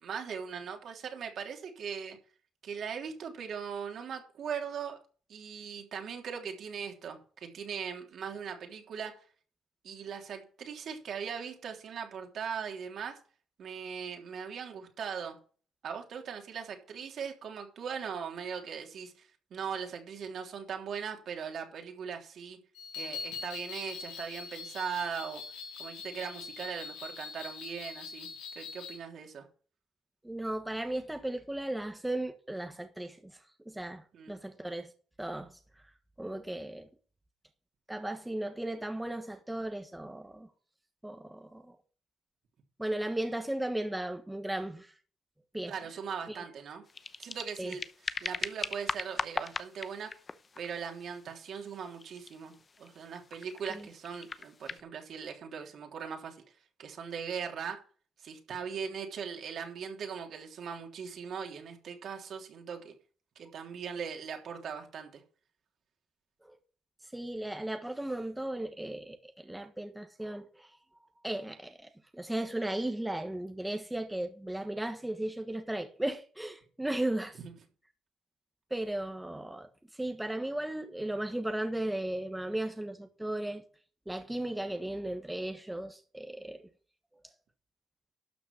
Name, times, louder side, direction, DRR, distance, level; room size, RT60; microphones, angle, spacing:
voice 1, 0.0-2.2 2.6-5.0 5.3-9.1 9.8-13.2 13.6-15.4 15.8-22.6 22.9-25.4 25.8-28.3 28.5-29.4 34.1-34.3 45.7-46.8 47.2-47.8 48.2-50.1 50.5-56.4 56.8-57.8 58.2-62.9 63.3-65.2 77.4-77.5, right 7 dB, 65° right, 3.2 m, -39 dB
sound 1, 22.8-29.0, left 5 dB, 80° left, 4.3 m, -43 dB
voice 2, 30.2-33.4 33.6-34.9 35.2-35.6 36.2-36.9 37.9-40.5 41.0-41.8 42.8-45.0 45.5-45.7 46.3-46.4 47.6-47.7 53.7-53.9 66.4-66.5 67.0-70.8 71.2-77.4 78.7-83.6 84.1-86.7, right 1 dB, 10° right, 1.4 m, -36 dB
sound 2, 46.9-54.8, left 4 dB, 35° left, 0.8 m, -40 dB
12.5 x 6.3 x 6.2 m
cardioid pair, 90°, 0 cm